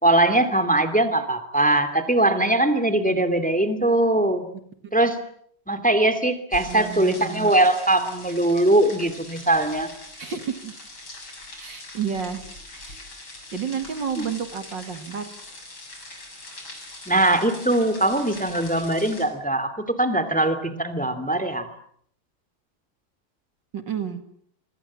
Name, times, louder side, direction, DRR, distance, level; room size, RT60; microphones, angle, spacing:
voice 1, 0.0-4.5 4.9-5.2 5.7-9.9 14.2-14.3 17.1-21.7, right 1 dB, 5° left, 10 dB, 2.5 m, -21 dB
sound 1, 6.5-19.2, left 2 dB, 70° left, 7.8 m, -42 dB
voice 2, 6.7-7.5 10.2-10.7 11.6-12.4 12.7-13.0 13.5-15.3 23.7-24.2, right 7 dB, 60° right, 8 dB, 2.6 m, -30 dB
27.0 x 24.5 x 7.5 m, 0.66 s
omnidirectional pair, 2.3 m